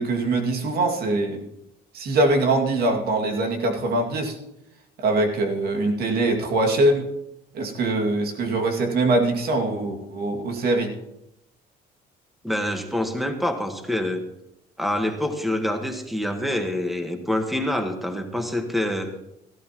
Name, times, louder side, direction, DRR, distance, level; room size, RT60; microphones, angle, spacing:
voice 1, 0.0-1.4 1.9-4.4 5.0-7.1 7.5-10.9, right 2 dB, 70° right, 2 dB, 2.3 m, -23 dB
voice 2, 12.4-14.2 14.8-19.1, left 1 dB, ahead, 5 dB, 1.4 m, -26 dB
16.5 x 14.5 x 3.0 m, 0.83 s
cardioid pair, 110°, 17 cm